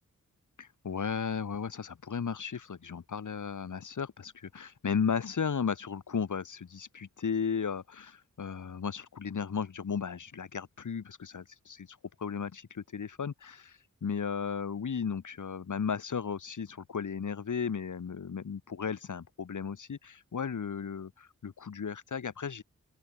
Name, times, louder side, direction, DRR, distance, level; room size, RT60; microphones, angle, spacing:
voice 1, 0.6-22.6, left 6 dB, 80° left, 4.1 m, -35 dB
open air
wide cardioid pair, 80°, 30 cm